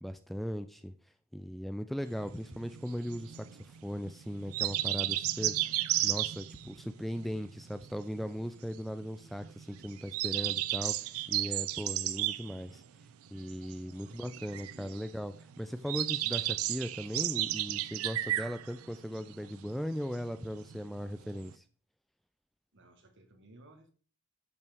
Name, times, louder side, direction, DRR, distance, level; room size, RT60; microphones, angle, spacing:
voice 1, 0.0-0.9 1.3-5.8 6.0-12.8 13.3-21.6, equal, ahead, 10 dB, 0.4 m, -38 dB
sound 1, 2.0-21.5, right 15 dB, 90° right, 0.4 m, -34 dB
voice 2, 14.0-15.0 22.7-23.9, right 2 dB, 60° right, 6 dB, 1.5 m, -57 dB
10.5 x 5.6 x 3.5 m, 0.41 s
head